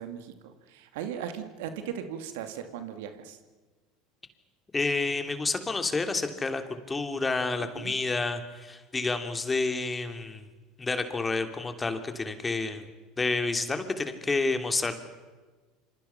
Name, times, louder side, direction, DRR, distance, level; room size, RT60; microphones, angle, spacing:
voice 1, 0.0-3.4 7.6-7.9, right 9 dB, 70° right, 8 dB, 2.3 m, -38 dB
voice 2, 4.7-10.4 10.8-12.9 13.2-14.9, left 3 dB, 20° left, 7 dB, 2.8 m, -29 dB
27.0 x 27.0 x 5.9 m, 1.3 s
hypercardioid pair, 75°, 0 cm